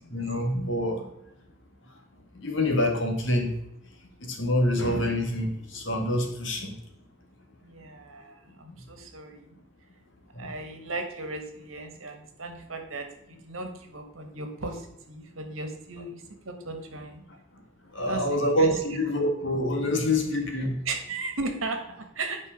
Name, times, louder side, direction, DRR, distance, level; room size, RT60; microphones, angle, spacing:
voice 1, 0.1-1.0 2.4-3.5 4.3-6.7 18.0-20.7, left 1 dB, 60° left, 3 dB, 2.0 m, -26 dB
voice 2, 7.6-9.5 10.4-17.2 18.0-18.8 20.8-22.4, right 3 dB, 80° right, 5 dB, 1.7 m, -36 dB
9.3 x 5.3 x 5.2 m, 0.81 s
head